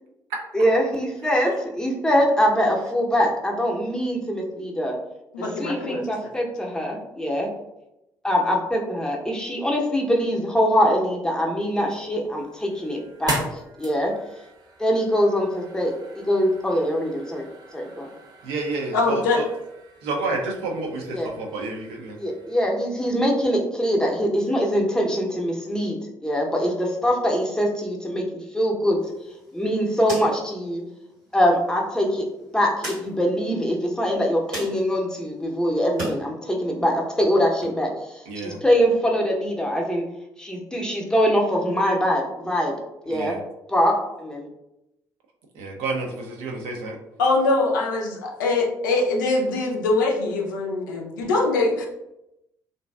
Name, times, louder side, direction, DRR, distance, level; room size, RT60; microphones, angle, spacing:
voice 1, 0.5-5.0 5.4-7.5 8.2-14.1 14.8-17.5 17.7-18.1 21.1-21.3 22.2-28.2 28.5-29.0 29.5-30.8 31.3-32.3 32.5-40.0 40.4-42.7 43.0-43.4 43.7-44.5, equal, 5° left, -1 dB, 0.7 m, -23 dB
voice 2, 5.3-6.0 18.9-19.4 47.2-51.9, left 3 dB, 80° left, 0 dB, 0.4 m, -23 dB
sound 1, 11.6-22.6, right 1 dB, 40° right, 0.7 m, -39 dB
voice 3, 18.4-19.4 20.0-22.2 38.3-38.6 43.1-43.4 45.6-47.0, right 3 dB, 70° right, 1 dB, 0.5 m, -30 dB
sound 2, 29.0-36.2 36.6-37.7, equal, 85° right, 1.4 m, -40 dB
2.5 x 2.2 x 2.2 m, 0.89 s
figure-of-eight pair, 45°, 10 cm